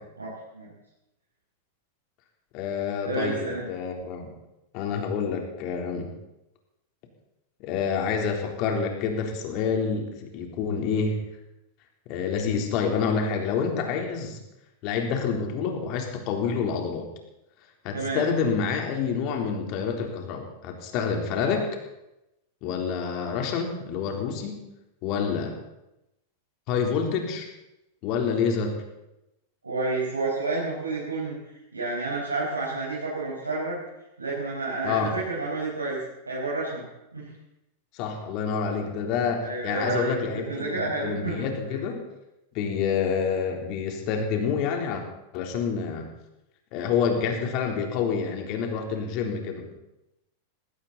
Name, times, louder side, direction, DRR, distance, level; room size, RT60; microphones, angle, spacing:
voice 1, 2.5-4.3 4.7-6.1 7.6-11.2 12.1-14.4 14.8-17.1 17.8-21.7 22.6-24.6 25.0-25.6 26.7-27.5 28.0-28.8 34.8-35.1 37.9-42.0 42.5-45.0 45.3-46.1 46.7-49.7, left 6 dB, 45° left, 2 dB, 3.7 m, -28 dB
voice 2, 3.0-3.7 17.9-18.3 21.3-21.6 29.6-31.4 31.7-33.8 34.2-36.0 36.3-36.9 37.1-37.3 39.4-40.1 40.5-41.8, right 3 dB, 85° right, -7 dB, 5.4 m, -30 dB
19.5 x 17.5 x 4.2 m, 0.91 s
figure-of-eight pair, 95°, 0 cm